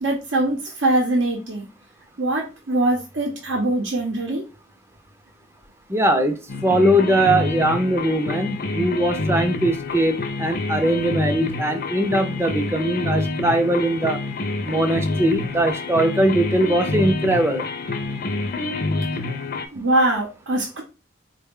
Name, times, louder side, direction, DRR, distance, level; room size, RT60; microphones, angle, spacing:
voice 1, 0.0-1.7 2.2-4.4 19.7-20.8, right 1 dB, 75° right, 0.8 m, -22 dB
voice 2, 5.9-14.2 14.6-17.6, right 1 dB, 15° right, 0.4 m, -21 dB
sound 1, 6.5-19.7, left 2 dB, 45° left, 0.5 m, -27 dB
4.0 x 2.2 x 3.5 m
head